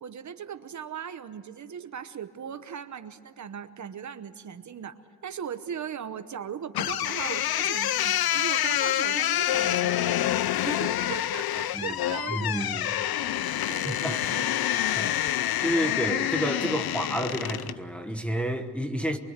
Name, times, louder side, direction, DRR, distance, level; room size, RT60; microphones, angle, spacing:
voice 1, 0.0-12.9 13.2-13.3 13.7-14.5 14.7-15.2, right 8 dB, 50° right, 0.9 m, -39 dB
sound 1, 6.7-17.8, left 12 dB, 70° left, 0.6 m, -27 dB
voice 2, 11.7-12.9 13.9-14.4 14.7-15.1 15.6-19.2, equal, 5° left, 1.1 m, -30 dB
24.5 x 24.0 x 8.1 m
wide cardioid pair, 180°, 37 cm